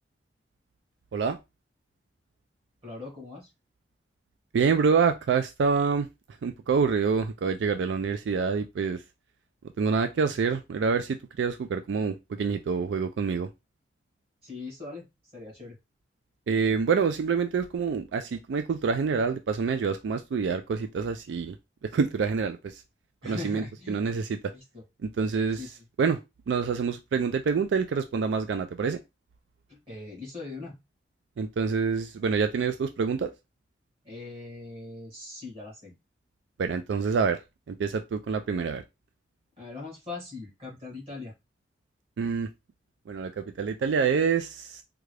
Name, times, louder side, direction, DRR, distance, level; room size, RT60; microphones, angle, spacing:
voice 1, 2.8-3.5 14.4-15.1 15.3-15.8 23.2-24.0 24.5-24.8 25.5-25.7 29.7-30.8 34.0-36.0 39.6-41.3, left 3 dB, 35° right, 1.8 m, -40 dB
voice 2, 4.5-6.1 6.4-9.0 9.8-13.5 16.5-21.6 21.9-22.8 23.2-24.3 25.2-25.6 26.0-26.2 26.5-29.0 31.4-33.3 36.6-37.4 37.7-38.8 42.2-42.5 43.1-44.8, right 5 dB, 85° right, 0.4 m, -26 dB
3.7 x 2.3 x 3.2 m
head